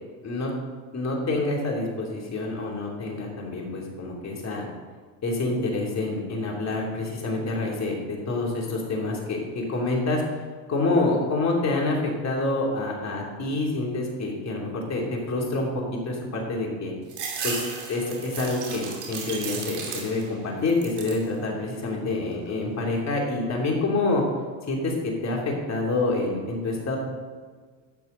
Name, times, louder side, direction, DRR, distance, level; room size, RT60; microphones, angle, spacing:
voice 1, 0.9-4.7 5.2-10.2 10.7-15.7 16.0-16.9 17.4-17.6 17.9-24.2 24.7-27.0, left 2 dB, 35° left, -2 dB, 3.1 m, -27 dB
sound 1, 17.1-20.4 20.7-21.3 21.8-22.5, right 5 dB, 50° right, 2.7 m, -35 dB
12.0 x 7.6 x 3.9 m, 1.5 s
supercardioid pair, 100°, 49 cm